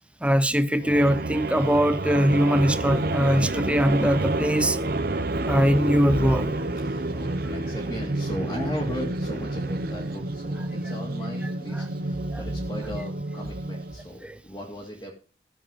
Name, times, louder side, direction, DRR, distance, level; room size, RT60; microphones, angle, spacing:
voice 1, 0.2-4.8 5.1-5.2 5.5-6.5 11.7-11.9 12.3-12.4 14.2-14.4, equal, 5° right, 0.6 m, -22 dB
sound 1, 0.8-14.1, right 2 dB, 55° right, 0.8 m, -29 dB
voice 2, 6.8-15.1, equal, 20° left, 2.0 m, -37 dB
14.0 x 7.3 x 5.3 m
head